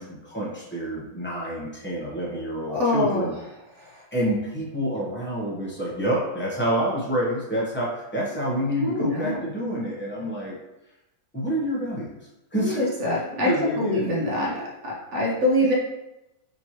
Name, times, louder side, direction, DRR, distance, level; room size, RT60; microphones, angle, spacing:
voice 1, 0.0-3.3 4.1-10.6 11.3-12.2 12.5-14.7 15.6-15.7, right 1 dB, 15° left, -6 dB, 0.4 m, -28 dB
voice 2, 2.7-3.3 3.8-3.9 8.8-9.5 12.6-15.7, left 1 dB, 55° right, -4 dB, 0.8 m, -25 dB
5.3 x 3.0 x 2.9 m, 0.94 s
omnidirectional pair, 2.1 m